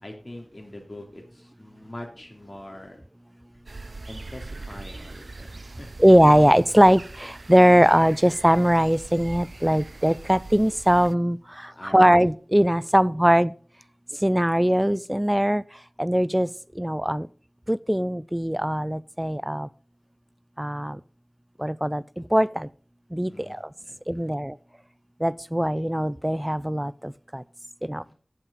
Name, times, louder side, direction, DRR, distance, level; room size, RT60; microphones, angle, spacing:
voice 1, 0.0-3.0 4.1-5.9 11.7-12.3 23.3-24.3 28.0-28.1, left 1 dB, 35° left, 3.0 m, -43 dB
sound 1, 3.7-11.1, right 3 dB, 70° right, 0.4 m, -42 dB
voice 2, 6.0-13.5 14.2-15.6 16.0-16.5 16.8-17.3 17.7-19.7 20.6-21.0 21.6-22.7 23.1-23.6 24.1-24.6 25.2-27.4 27.8-28.0, equal, 10° right, 0.4 m, -21 dB
8.4 x 7.3 x 5.2 m
wide cardioid pair, 45°, 0 cm